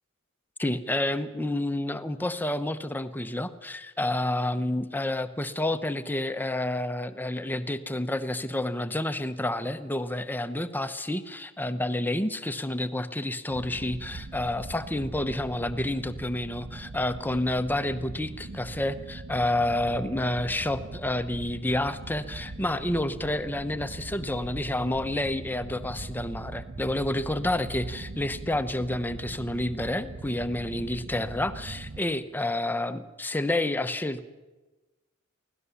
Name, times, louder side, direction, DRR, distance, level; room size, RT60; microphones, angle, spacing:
voice 1, 0.6-34.3, left 1 dB, 10° left, 10 dB, 0.8 m, -29 dB
sound 1, 13.5-32.0, right 3 dB, 35° right, 0.6 m, -41 dB
24.0 x 17.0 x 7.1 m, 1.2 s
head